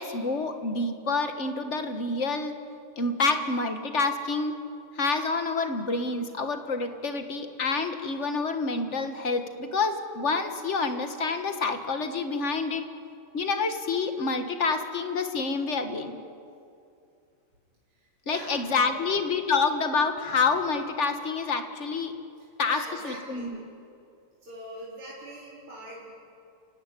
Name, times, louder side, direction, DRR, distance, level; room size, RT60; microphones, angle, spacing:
voice 1, 0.0-2.5 3.0-4.5 4.9-12.8 13.3-16.1 18.3-22.1 22.6-22.8 23.0-23.6, left 4 dB, 35° left, 7 dB, 1.6 m, -28 dB
voice 2, 17.9-19.1 20.3-20.4 22.4-23.6 24.4-26.1, right 1 dB, 85° right, -6 dB, 5.0 m, -43 dB
27.5 x 16.0 x 9.9 m, 2.5 s
omnidirectional pair, 2.3 m